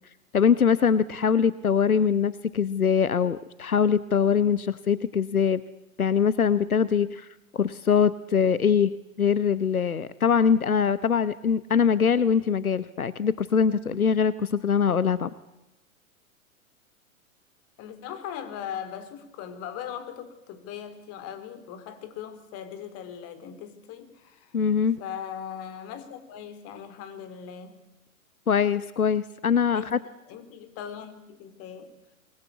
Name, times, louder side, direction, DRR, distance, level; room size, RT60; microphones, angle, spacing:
voice 1, 0.3-5.6 6.0-7.3 7.5-15.3 24.5-25.0 28.5-30.0, left 7 dB, 90° left, 16 dB, 1.0 m, -23 dB
voice 2, 17.8-24.6 25.0-27.8 29.7-29.9 30.2-32.0, left 9 dB, 35° left, 11 dB, 3.7 m, -39 dB
25.0 x 21.0 x 8.3 m, 0.92 s
figure-of-eight pair, 105°, 42 cm